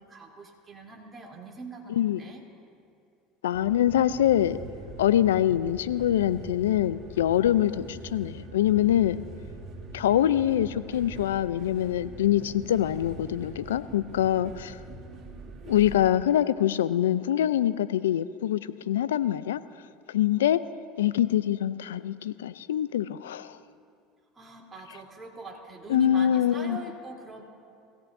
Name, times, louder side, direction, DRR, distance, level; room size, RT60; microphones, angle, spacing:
voice 1, 0.0-2.4 23.4-23.5 24.3-27.4, right 2 dB, 20° right, -2 dB, 3.3 m, -42 dB
voice 2, 1.9-2.2 3.4-4.6 5.0-9.2 9.9-14.8 15.6-19.6 20.1-20.6 21.0-23.6 25.9-26.8, left 11 dB, 90° left, 15 dB, 0.4 m, -24 dB
sound 1, 3.5-15.9, right 2 dB, 45° right, 2.4 m, -43 dB
24.5 x 16.5 x 2.7 m, 2.4 s
hypercardioid pair, 80°, 0 cm